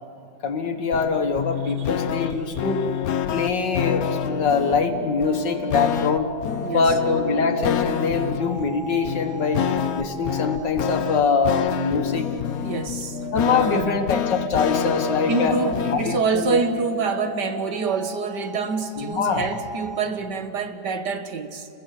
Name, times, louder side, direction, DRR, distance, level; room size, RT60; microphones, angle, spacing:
voice 1, 0.4-2.8 3.3-6.3 6.7-9.6 10.0-12.4 13.3-15.5 15.9-16.6 19.0-19.5, left 5 dB, 85° left, 2.2 m, -23 dB
sound 1, 0.9-16.2, left 9 dB, 65° left, 1.2 m, -28 dB
voice 2, 2.2-2.6 6.6-6.9 12.5-13.3 13.6-14.0 15.3-21.7, right 4 dB, 75° right, 2.0 m, -27 dB
sound 2, 3.4-10.8 12.8-20.1, right 1 dB, 45° right, 1.7 m, -36 dB
29.0 x 21.0 x 8.3 m
omnidirectional pair, 1.9 m